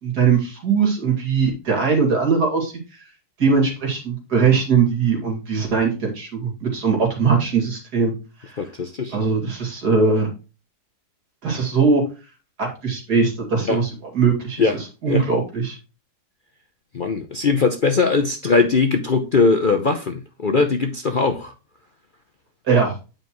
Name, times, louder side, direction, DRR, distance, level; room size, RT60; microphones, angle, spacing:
voice 1, 0.0-2.7 3.4-8.1 8.4-8.6 9.1-10.3 11.4-12.0 12.6-13.9 14.1-15.8 22.7-22.9, right 5 dB, 80° right, 1 dB, 3.1 m, -20 dB
voice 2, 8.6-9.2 13.7-13.8 14.6-14.7 15.1-15.2 16.9-21.5, left 4 dB, 45° left, 5 dB, 0.7 m, -20 dB
9.3 x 5.2 x 3.0 m, 0.30 s
omnidirectional pair, 1.7 m